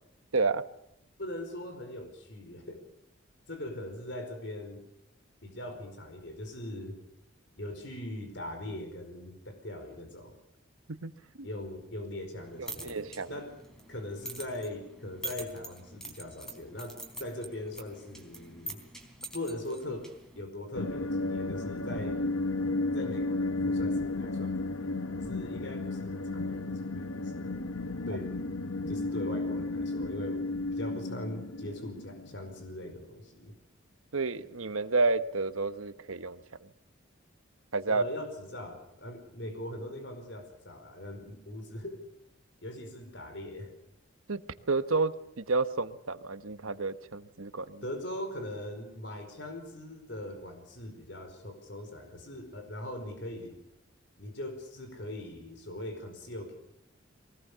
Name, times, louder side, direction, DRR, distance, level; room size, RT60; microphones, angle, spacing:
voice 1, 0.3-0.6 11.0-11.1 11.4-11.5 12.6-13.4 34.1-36.7 37.7-38.0 44.3-44.4 44.7-47.8, right 3 dB, 90° right, 11 dB, 1.2 m, -30 dB
voice 2, 1.2-2.8 3.5-4.8 5.4-7.0 7.6-10.3 11.4-13.5 13.9-18.8 19.3-20.1 20.3-22.2 22.9-27.6 28.1-28.3 28.9-30.5 30.7-33.5 37.9-42.0 42.6-43.7 47.8-53.6 54.2-56.6, left 1 dB, 60° left, 5 dB, 4.8 m, -41 dB
sound 1, 12.4-20.4, right 1 dB, ahead, 3.5 m, -45 dB
sound 2, 20.7-32.7, left 2 dB, 85° left, 1.3 m, -33 dB
23.5 x 18.5 x 6.9 m, 0.81 s
head